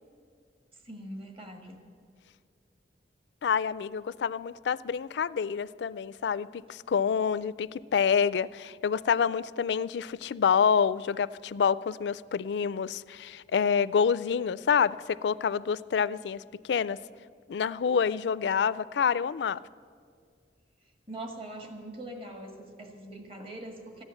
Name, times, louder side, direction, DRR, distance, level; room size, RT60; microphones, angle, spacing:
voice 1, 0.8-1.8 21.1-24.0, right 1 dB, 30° right, 4 dB, 1.6 m, -42 dB
voice 2, 3.4-17.0 17.5-19.6, left 6 dB, 75° left, 18 dB, 0.4 m, -27 dB
14.5 x 9.8 x 8.3 m, 2.1 s
head